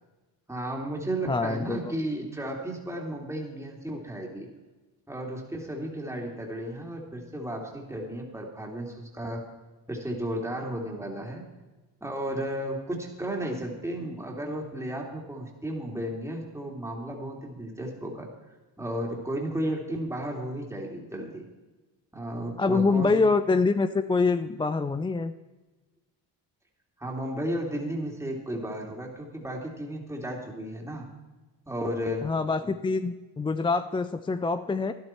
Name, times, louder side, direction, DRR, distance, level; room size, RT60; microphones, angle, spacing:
voice 1, 0.5-4.5 5.1-9.5 9.9-11.5 12.0-18.3 18.8-21.4 22.1-23.1 27.0-31.1 31.7-32.3 32.6-32.7, right 1 dB, 5° right, -1 dB, 2.8 m, -34 dB
voice 2, 1.3-1.9 22.6-25.3 32.2-34.9, left 4 dB, 10° left, 11 dB, 0.3 m, -25 dB
12.0 x 11.5 x 4.5 m, 1.2 s
supercardioid pair, 60°, 47 cm